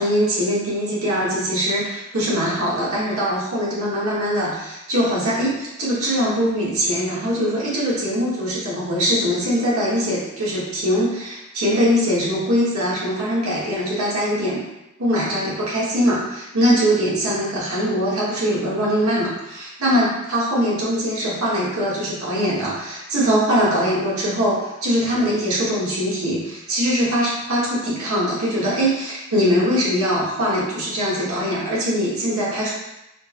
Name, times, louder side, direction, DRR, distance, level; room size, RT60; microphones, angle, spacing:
voice 1, 0.0-14.6 15.0-32.7, equal, 80° right, -7 dB, 1.4 m, -22 dB
4.9 x 2.1 x 2.9 m, 0.91 s
head